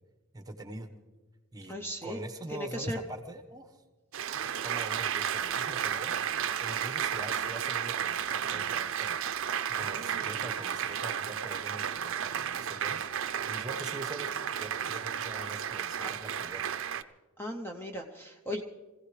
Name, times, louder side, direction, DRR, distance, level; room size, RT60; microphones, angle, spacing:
voice 1, 0.3-0.9 1.5-1.7 2.0-3.8 4.3-6.1 6.6-9.2 9.7-13.1 13.5-16.6, right 2 dB, 20° right, 7 dB, 1.1 m, -43 dB
voice 2, 1.7-2.2 2.5-3.0 16.0-16.1 17.4-18.6, left 1 dB, 10° left, 3 dB, 0.7 m, -37 dB
Applause, 4.1-17.0, right 8 dB, 65° right, 0.5 m, -33 dB
25.5 x 16.0 x 3.3 m, 1.3 s
head